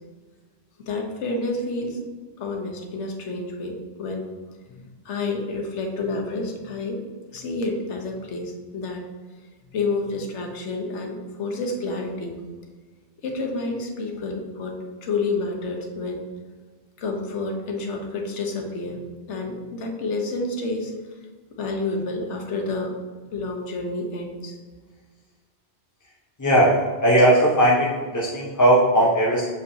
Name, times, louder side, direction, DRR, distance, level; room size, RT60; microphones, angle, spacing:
voice 1, 0.8-2.1 2.4-4.3 4.7-7.0 7.3-9.0 9.7-12.4 13.2-16.2 17.0-21.2 21.5-23.0 23.3-24.6, left 3 dB, 75° left, 2 dB, 1.2 m, -29 dB
voice 2, 26.4-29.5, right 1 dB, 20° left, -5 dB, 0.6 m, -18 dB
6.6 x 5.3 x 2.7 m, 1.4 s
omnidirectional pair, 1.2 m